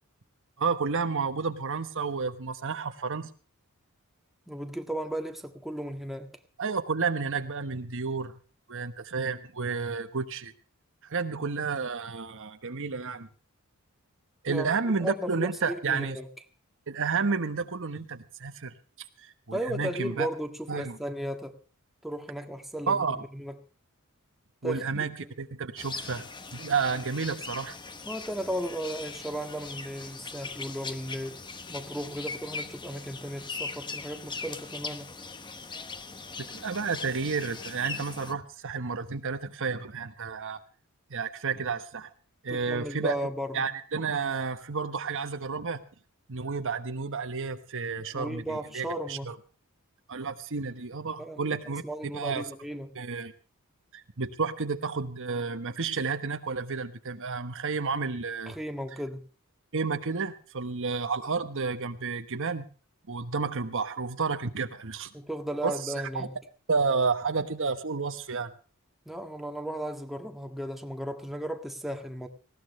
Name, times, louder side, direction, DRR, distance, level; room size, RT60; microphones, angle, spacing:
voice 1, 0.6-3.3 6.6-8.3 8.7-10.5 11.0-13.3 14.4-16.2 16.9-18.7 19.2-20.3 20.7-21.0 22.9-23.2 24.6-25.1 25.4-26.2 26.5-27.8 36.5-40.6 41.1-42.1 42.4-43.2 43.5-45.8 46.3-49.2 50.1-51.8 52.1-52.4 52.9-53.3 53.9-58.5 59.7-62.7 63.1-65.1 65.6-66.3 66.7-68.5, right 4 dB, 60° right, 1.2 m, -31 dB
voice 2, 4.5-6.3 14.5-16.3 19.5-21.6 22.0-23.6 24.6-25.3 28.0-31.4 31.7-35.1 42.5-43.7 48.0-49.3 51.2-53.0 58.5-59.3 65.1-66.4 69.0-72.3, right 1 dB, ahead, 1.7 m, -35 dB
sound 1, 25.8-38.3, left 4 dB, 20° left, 1.1 m, -40 dB
19.5 x 17.0 x 3.2 m
head